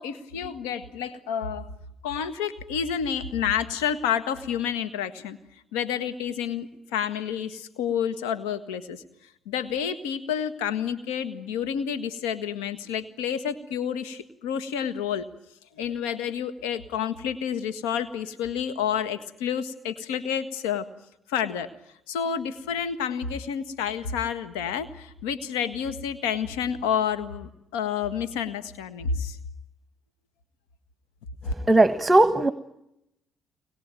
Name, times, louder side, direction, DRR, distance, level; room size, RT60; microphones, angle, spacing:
voice 1, 0.0-1.7 2.0-5.4 5.7-9.0 9.5-15.3 15.8-20.9 21.3-21.7 22.1-29.4 31.5-31.6, left 8 dB, 85° left, 10 dB, 1.7 m, -29 dB
voice 2, 31.5-32.5, right 2 dB, 20° right, 11 dB, 1.5 m, -19 dB
24.5 x 21.0 x 9.2 m, 0.83 s
hypercardioid pair, 60°, 0 cm